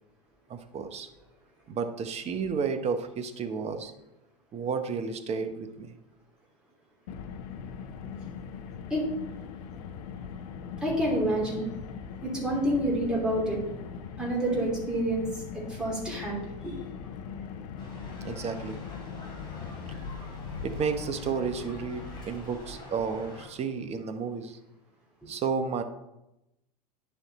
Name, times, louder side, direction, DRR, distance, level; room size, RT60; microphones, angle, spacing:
voice 1, 0.5-1.1 1.7-3.9 4.5-6.0 18.2-18.8 20.6-24.6 25.3-25.8, right 5 dB, 30° right, 8 dB, 0.9 m, -32 dB
Car, 7.1-22.3, left 6 dB, 60° left, 0.7 m, -40 dB
voice 2, 10.8-11.7 12.2-13.6 14.2-16.8, right 1 dB, 5° right, -4 dB, 3.1 m, -28 dB
sound 1, 17.8-23.5, left 1 dB, 20° left, 3.1 m, -46 dB
10.5 x 4.3 x 4.1 m, 0.91 s
hypercardioid pair, 95°, 21 cm